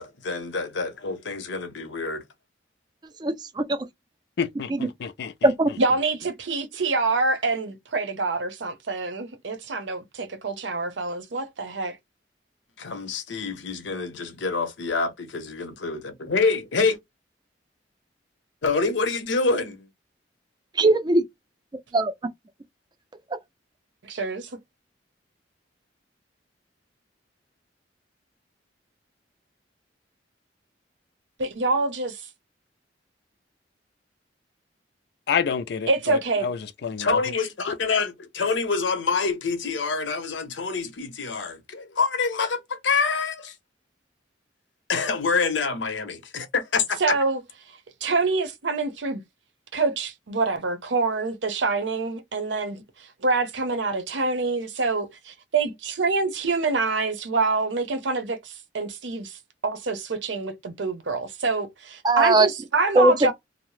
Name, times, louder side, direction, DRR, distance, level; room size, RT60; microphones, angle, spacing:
voice 1, 0.0-2.2 12.8-17.0 18.6-19.9 37.0-43.5 44.9-47.2, left 4 dB, 80° left, 0.7 m, -26 dB
voice 2, 3.2-3.8 4.7-4.8 5.4-5.7 20.8-21.2 21.9-22.1 62.0-62.5 63.0-63.1, right 2 dB, 20° right, 0.4 m, -19 dB
voice 3, 4.4-5.3 35.3-37.2, left 6 dB, 60° left, 0.4 m, -28 dB
voice 4, 5.8-12.0 24.0-24.5 31.4-32.3 35.9-36.5 47.0-47.4 48.0-49.2 49.7-55.7 56.0-63.3, right 3 dB, 75° right, 0.7 m, -26 dB
2.7 x 2.0 x 3.1 m
head